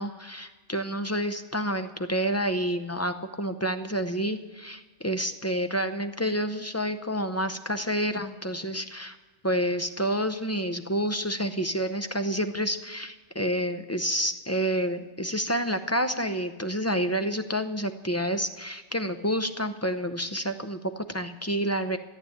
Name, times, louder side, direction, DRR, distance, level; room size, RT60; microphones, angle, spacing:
voice 1, 0.0-9.2 9.4-22.0, equal, 15° left, 8 dB, 0.6 m, -29 dB
14.0 x 8.7 x 8.6 m, 1.3 s
omnidirectional pair, 1.2 m